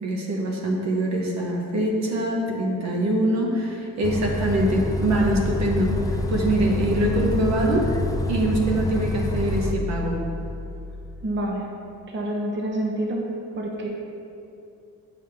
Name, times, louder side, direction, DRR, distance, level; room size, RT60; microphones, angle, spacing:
voice 1, 0.0-7.9 8.3-10.2, right 1 dB, 65° right, 0 dB, 1.1 m, -24 dB
Bus, 4.0-9.7, left 2 dB, 10° left, 0.5 m, -28 dB
sound 1, 5.1-11.3, left 1 dB, 30° left, 1.0 m, -33 dB
voice 2, 11.2-11.7 12.1-13.2 13.6-13.9, right 1 dB, 40° right, 0 dB, 1.0 m, -27 dB
8.6 x 4.9 x 3.5 m, 2.6 s
cardioid pair, 90°, 30 cm